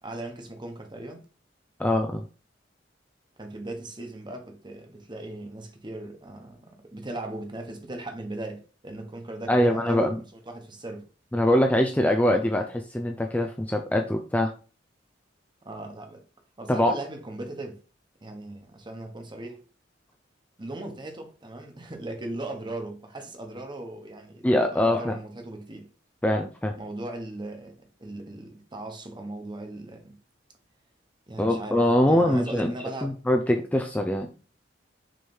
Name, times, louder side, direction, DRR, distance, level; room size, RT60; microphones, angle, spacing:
voice 1, 0.0-1.2 3.4-10.1 10.5-11.1 15.6-16.2 16.6-17.8 18.2-19.6 20.6-25.9 26.8-30.2 31.3-33.1, right 2 dB, 25° right, 1.2 m, -38 dB
voice 2, 1.8-2.2 9.5-10.2 11.3-14.5 16.7-16.9 24.4-25.2 26.2-26.7 31.4-32.7 33.0-34.3, left 1 dB, 10° left, 0.5 m, -23 dB
6.3 x 3.3 x 4.5 m
head